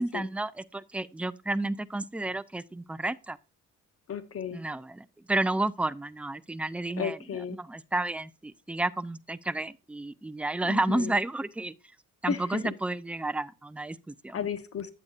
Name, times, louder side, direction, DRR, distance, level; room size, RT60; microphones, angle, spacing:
voice 1, 0.0-3.4 4.5-7.2 7.6-11.7 12.2-14.4, right 2 dB, 5° right, 0.4 m, -31 dB
voice 2, 4.1-4.6 7.0-7.6 10.7-11.1 12.3-12.6 14.3-14.9, left 7 dB, 50° left, 1.1 m, -34 dB
8.5 x 8.0 x 2.5 m
cardioid pair, 90°, 30 cm